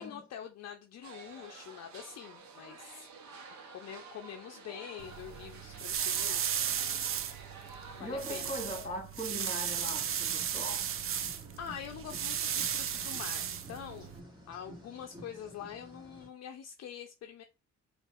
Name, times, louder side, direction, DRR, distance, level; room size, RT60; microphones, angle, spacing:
voice 1, 0.0-3.1 3.7-7.0 7.9-8.5 11.6-14.1 14.5-17.4, left 8 dB, 60° left, 0.5 m, -45 dB
sound 1, 1.0-8.3, right 4 dB, 70° right, 0.9 m, -51 dB
sound 2, 5.0-14.2, right 9 dB, 45° right, 0.5 m, -35 dB
voice 2, 8.0-10.9, equal, 25° left, 2.0 m, -40 dB
sound 3, 9.7-16.3, equal, 15° right, 1.7 m, -52 dB
4.4 x 2.4 x 2.4 m
cardioid pair, 90°, 30 cm